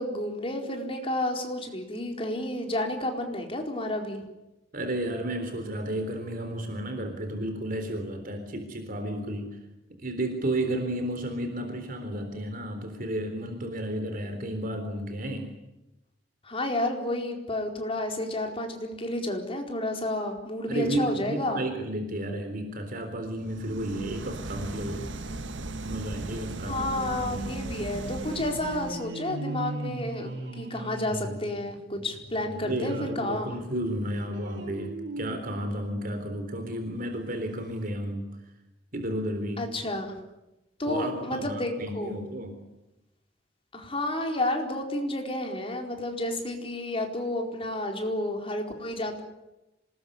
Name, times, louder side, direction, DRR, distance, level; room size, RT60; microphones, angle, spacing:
voice 1, 0.0-4.2 16.4-21.6 26.7-33.6 39.6-40.2 40.8-42.2 43.7-49.2, left 1 dB, 30° left, 3 dB, 4.5 m, -31 dB
voice 2, 4.7-9.6 10.0-15.5 20.7-25.1 25.8-27.4 32.6-38.3 38.9-39.7 40.9-42.7, right 1 dB, 50° right, 5 dB, 3.8 m, -32 dB
sound 1, 23.4-29.1, right 2 dB, 85° right, 1.6 m, -38 dB
sound 2, 23.7-33.3 33.7-36.8 37.3-37.4 37.6-37.7, right 2 dB, 65° right, 3.4 m, -40 dB
26.5 x 20.5 x 10.0 m, 0.99 s
head